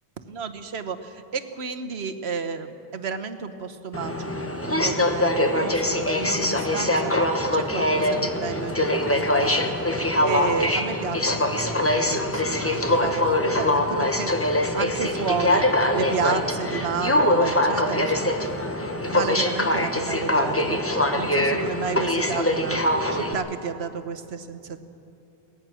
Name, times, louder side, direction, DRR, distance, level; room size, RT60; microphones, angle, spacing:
voice 1, 0.3-7.1 7.5-9.7 10.2-15.6 15.9-18.5 18.8-22.8 23.1-24.8, right 6 dB, 85° right, 8 dB, 1.3 m, -32 dB
Aircraft, 3.9-23.3, left 1 dB, 15° left, 1.1 m, -23 dB
sound 1, 7.9-15.8, left 2 dB, 30° left, 1.7 m, -43 dB
23.0 x 18.0 x 6.3 m, 2.8 s
omnidirectional pair, 1.0 m